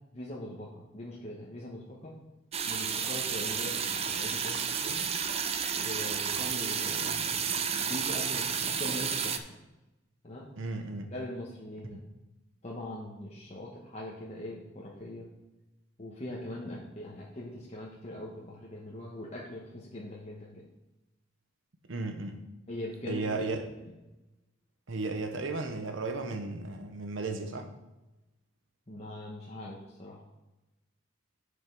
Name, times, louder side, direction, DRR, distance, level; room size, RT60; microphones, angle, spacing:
voice 1, 0.1-2.2 2.7-5.1 5.7-9.6 10.2-10.5 11.1-12.0 12.6-15.3 16.0-20.6 22.7-23.9 28.9-30.2, left 1 dB, 35° left, -4 dB, 1.2 m, -41 dB
sound 1, 2.5-9.4, right 7 dB, 30° right, 0.5 m, -31 dB
voice 2, 10.6-11.1 11.9-12.0 21.9-22.4 23.1-23.7 24.9-27.7, right 3 dB, 85° right, 6 dB, 1.0 m, -34 dB
7.8 x 5.3 x 5.4 m, 1.0 s
head